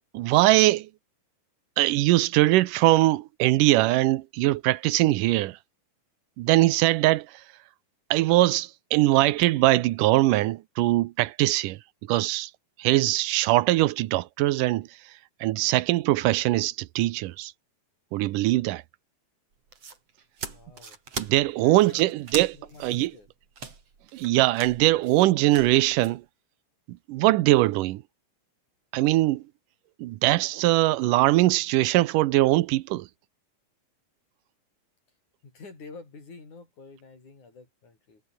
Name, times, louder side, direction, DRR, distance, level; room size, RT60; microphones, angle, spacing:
voice 1, 0.1-0.9 1.8-5.6 6.4-7.3 8.1-11.8 12.1-12.5 12.8-14.9 15.4-17.5 18.1-18.8 21.2-22.5 22.8-23.1 24.1-26.2 27.1-28.0 28.9-29.4 30.0-33.1, right 17 dB, 85° right, 2.4 m, -22 dB
sound 1, 19.5-26.2, right 5 dB, 50° right, 4.7 m, -40 dB
voice 2, 20.5-21.0 21.6-23.3 35.4-38.2, left 4 dB, 65° left, 8.1 m, -48 dB
omnidirectional pair, 3.7 m